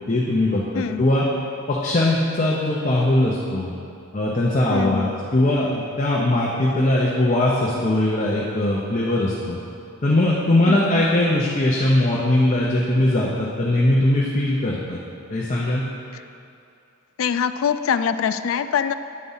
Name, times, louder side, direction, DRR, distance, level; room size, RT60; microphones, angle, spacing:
voice 1, 0.1-1.3 1.7-3.7 4.1-9.6 10.0-15.0 15.3-15.9, left 1 dB, 35° left, -4 dB, 0.7 m, -20 dB
voice 2, 4.7-5.1 10.7-11.0 17.2-18.9, left 7 dB, 70° left, 12 dB, 0.3 m, -23 dB
9.5 x 4.2 x 5.5 m, 2.7 s
head